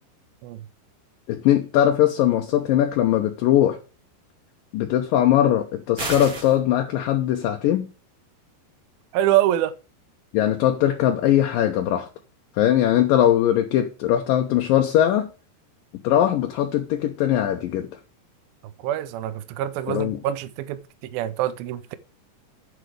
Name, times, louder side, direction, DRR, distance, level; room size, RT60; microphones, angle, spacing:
voice 1, 1.3-3.8 4.7-7.9 10.3-12.1 12.6-15.3 16.0-17.9 19.9-20.2, left 11 dB, 75° left, 2.1 m, -20 dB
sound 1, 6.0-6.6, right 2 dB, 25° right, 2.3 m, -30 dB
voice 2, 9.1-9.7 18.8-20.8 21.1-22.0, right 13 dB, 80° right, 2.3 m, -24 dB
8.2 x 8.0 x 4.8 m
omnidirectional pair, 4.9 m